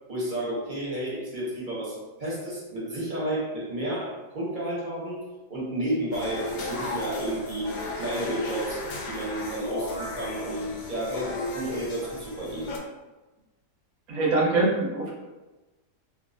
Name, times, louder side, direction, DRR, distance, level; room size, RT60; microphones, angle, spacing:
voice 1, 0.1-12.7, right 1 dB, 35° right, -6 dB, 0.9 m, -32 dB
sound 1, 6.1-12.8, left 2 dB, 90° left, 1.2 m, -35 dB
voice 2, 14.1-15.1, right 2 dB, 65° right, -3 dB, 1.1 m, -23 dB
3.0 x 2.8 x 2.6 m, 1.1 s
omnidirectional pair, 1.8 m